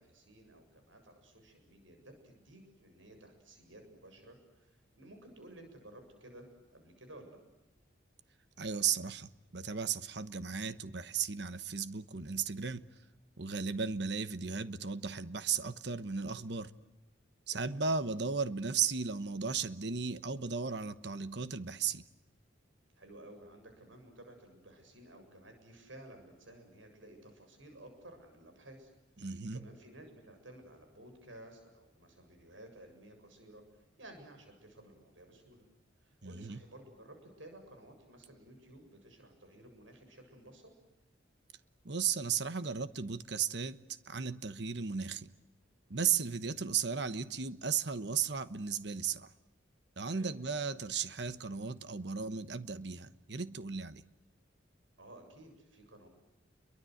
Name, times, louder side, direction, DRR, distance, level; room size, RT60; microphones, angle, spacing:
voice 1, 0.0-7.4 17.5-17.8 23.0-28.9 29.2-33.6 34.0-35.6 36.0-40.7 50.1-50.3 55.0-56.1, right 1 dB, 80° right, 7.5 m, -55 dB
voice 2, 8.6-12.8 13.4-16.7 17.5-22.0 29.2-29.7 36.2-36.6 41.8-43.8 44.0-45.3 45.9-49.3 50.0-54.0, right 6 dB, 60° right, 1.2 m, -35 dB
30.0 x 23.5 x 7.9 m
head